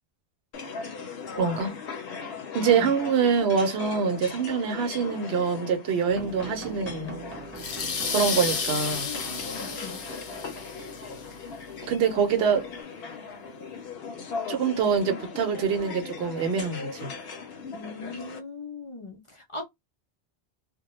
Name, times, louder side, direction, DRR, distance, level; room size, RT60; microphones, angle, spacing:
sound 1, 0.5-18.4, left 5 dB, 65° left, 0.8 m, -39 dB
voice 1, 1.4-1.7 2.5-7.1 8.1-9.1 11.9-12.7 14.5-17.1, right 6 dB, 70° right, 0.9 m, -25 dB
sound 2, 6.1-12.8, right 3 dB, 10° right, 0.8 m, -44 dB
sound 3, 7.6-11.0, left 5 dB, 90° left, 1.0 m, -32 dB
voice 2, 9.0-10.0 17.7-19.6, left 3 dB, 40° left, 0.4 m, -39 dB
2.2 x 2.1 x 2.9 m
omnidirectional pair, 1.2 m